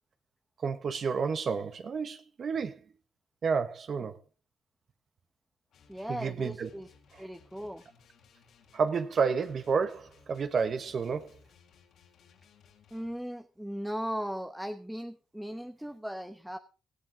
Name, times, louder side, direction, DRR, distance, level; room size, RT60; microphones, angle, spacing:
voice 1, 0.6-2.8 3.4-4.2 6.1-6.7 7.1-7.2 8.7-11.3, right 5 dB, 50° right, 1.3 m, -30 dB
sound 1, 5.7-13.2, left 6 dB, 70° left, 3.8 m, -61 dB
voice 2, 5.9-6.9 7.2-7.8 12.9-16.6, equal, 5° right, 1.0 m, -37 dB
17.0 x 14.0 x 3.7 m
cardioid pair, 90°, 0 cm